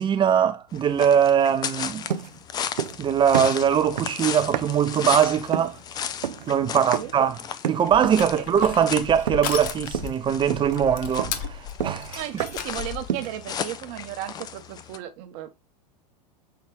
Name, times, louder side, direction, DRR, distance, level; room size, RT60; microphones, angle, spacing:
voice 1, 0.0-2.1 3.0-5.8 6.5-7.4 7.6-12.2, right 8 dB, 20° right, 0.6 m, -21 dB
sound 1, 0.7-15.0, left 8 dB, 20° left, 0.3 m, -35 dB
sound 2, 2.1-3.1 3.3-4.9 5.5-5.8 6.2-6.5 6.9-7.2 7.6-8.3 8.6-8.9 9.3-9.6 9.9-10.2 10.5-12.7 13.1-13.4, right 9 dB, 85° right, 0.4 m, -31 dB
voice 2, 6.7-7.1 8.2-8.4 12.1-15.5, right 12 dB, 50° right, 0.9 m, -35 dB
Crushing, 7.9-13.1, left 9 dB, 40° left, 0.8 m, -35 dB
5.8 x 3.1 x 2.2 m
hypercardioid pair, 95°, 21 cm